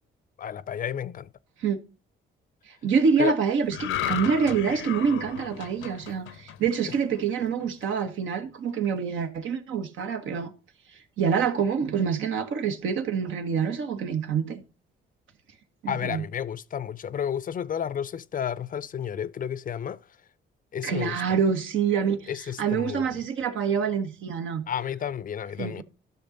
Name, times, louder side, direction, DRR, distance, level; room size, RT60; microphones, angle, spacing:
voice 1, 0.4-1.3 3.2-3.3 15.9-20.0 20.7-21.2 22.3-23.2 24.7-25.8, left 8 dB, 45° left, 0.5 m, -31 dB
voice 2, 2.8-10.5 11.2-14.6 15.8-16.2 20.8-22.3 22.6-24.6 25.6-25.8, right 6 dB, 80° right, 1.4 m, -26 dB
sound 1, 3.7-7.2 7.6-7.8, left 10 dB, 90° left, 0.8 m, -34 dB
12.0 x 6.2 x 3.9 m
cardioid pair, 90°, 20 cm